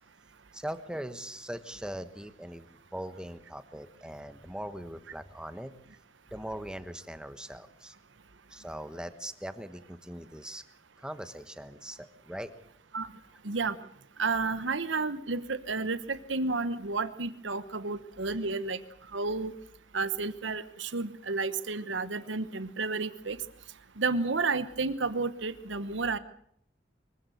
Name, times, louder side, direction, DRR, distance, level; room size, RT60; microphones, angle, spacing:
voice 1, 0.5-2.6 2.9-5.7 6.3-7.9 8.5-10.6 11.0-12.5, equal, 5° right, 10 dB, 1.3 m, -40 dB
voice 2, 13.4-13.8 14.2-18.8 19.1-19.5 19.9-23.4 24.0-26.2, right 3 dB, 90° right, 13 dB, 1.1 m, -31 dB
24.5 x 15.5 x 7.9 m, 0.69 s
head